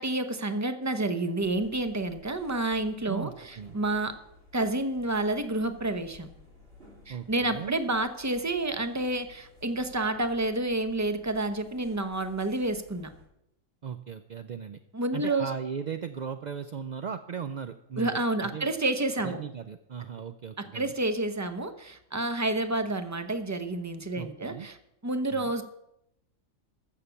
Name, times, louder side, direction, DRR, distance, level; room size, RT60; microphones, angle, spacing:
voice 1, 0.0-4.2 4.5-6.3 7.1-13.1 14.9-15.5 18.0-19.4 20.6-24.8 25.0-25.6, right 2 dB, 15° right, 9 dB, 0.7 m, -29 dB
sound 1, 1.4-13.2, left 2 dB, 45° right, 3.1 m, -55 dB
voice 2, 3.1-3.8 7.1-7.8 13.8-14.8 15.1-18.7 19.2-20.9 24.1-24.7 25.3-25.5, right 7 dB, 60° right, 9 dB, 0.4 m, -37 dB
14.0 x 6.7 x 6.9 m, 0.81 s
omnidirectional pair, 1.4 m